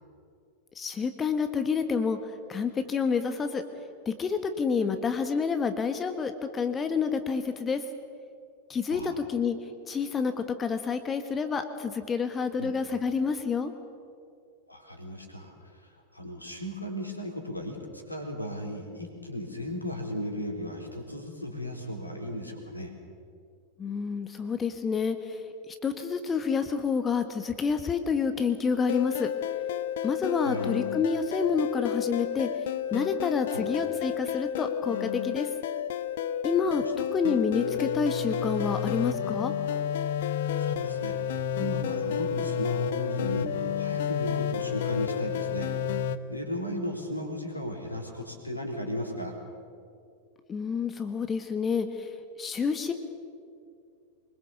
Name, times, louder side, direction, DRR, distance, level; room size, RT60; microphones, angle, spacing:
voice 1, 0.8-2.2 2.5-3.6 4.0-7.8 8.7-9.5 9.9-13.7 23.8-25.4 25.8-29.3 30.0-32.5 32.9-35.5 36.4-36.9 37.1-39.5 50.5-52.1 52.4-52.9, left 5 dB, 20° left, 8 dB, 1.4 m, -28 dB
voice 2, 14.7-15.5 16.1-22.9 30.4-30.8 33.5-33.7 36.7-36.8 40.6-43.5 43.8-49.3, equal, 85° left, 2 dB, 3.7 m, -36 dB
sound 1, 28.9-46.2, left 8 dB, 55° left, 0.8 m, -31 dB
24.5 x 21.5 x 7.1 m, 2.4 s
figure-of-eight pair, 90°, 0 cm